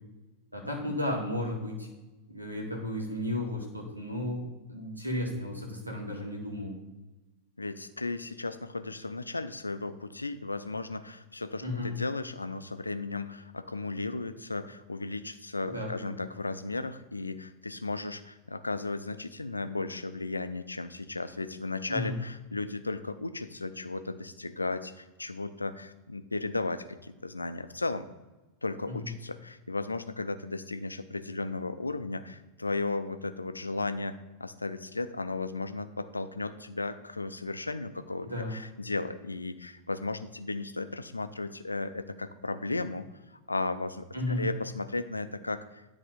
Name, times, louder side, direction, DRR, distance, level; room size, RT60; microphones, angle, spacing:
voice 1, 0.5-1.9 2.3-6.8 11.6-11.9 15.7-16.1 21.9-22.1 28.9-29.1 38.2-38.6 44.1-44.4, left 1 dB, 85° right, 0 dB, 1.9 m, -34 dB
voice 2, 7.6-28.1 28.6-43.1 43.5-45.9, left 3 dB, 80° left, 11 dB, 0.5 m, -35 dB
10.0 x 3.5 x 5.1 m, 1.1 s
figure-of-eight pair, 90°, 0 cm